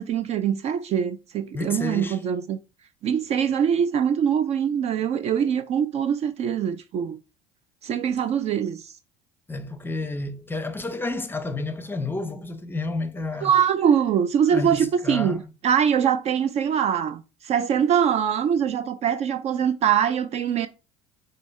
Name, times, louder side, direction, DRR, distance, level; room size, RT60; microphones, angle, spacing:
voice 1, 0.0-2.6 3.0-7.2 7.8-8.9 13.4-20.7, right 8 dB, 40° right, 0.4 m, -23 dB
voice 2, 1.5-2.2 9.5-13.5 14.5-15.5, left 2 dB, 10° left, 0.7 m, -30 dB
5.1 x 2.7 x 3.2 m
hypercardioid pair, 70°, 17 cm